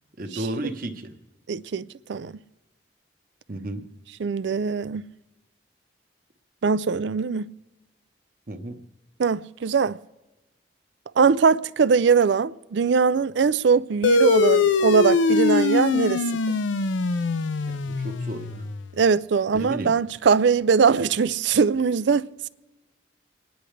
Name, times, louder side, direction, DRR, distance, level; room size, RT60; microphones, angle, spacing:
voice 1, 0.2-1.1 3.5-3.9 8.5-8.8 17.7-18.7 19.5-19.9, right 1 dB, 45° right, 1.1 m, -33 dB
voice 2, 1.5-2.3 4.2-5.0 6.6-7.5 9.2-10.0 11.2-16.2 16.5-16.6 19.0-22.5, right 5 dB, 70° right, 0.4 m, -21 dB
sound 1, 14.0-18.9, left 3 dB, 85° left, 0.6 m, -22 dB
28.5 x 10.5 x 3.3 m
head